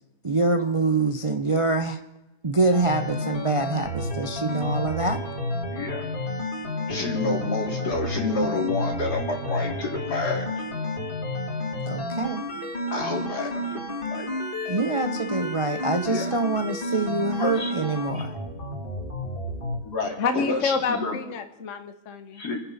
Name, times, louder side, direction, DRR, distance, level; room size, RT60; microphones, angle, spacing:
voice 1, 0.2-2.0 2.4-5.2 11.8-12.4 14.7-18.3, right 3 dB, 30° right, 6 dB, 0.6 m, -25 dB
sound 1, 2.7-19.8, left 1 dB, 30° left, 3.1 m, -31 dB
voice 2, 5.7-6.0 6.9-10.7 12.9-14.3 16.1-16.3 17.4-17.8 18.2-18.3 19.8-21.2 22.3-22.6, left 3 dB, 75° left, 1 dB, 3.4 m, -29 dB
voice 3, 20.2-22.4, left 5 dB, 55° left, 8 dB, 1.2 m, -28 dB
28.5 x 10.0 x 4.1 m, 1.0 s
omnidirectional pair, 1.7 m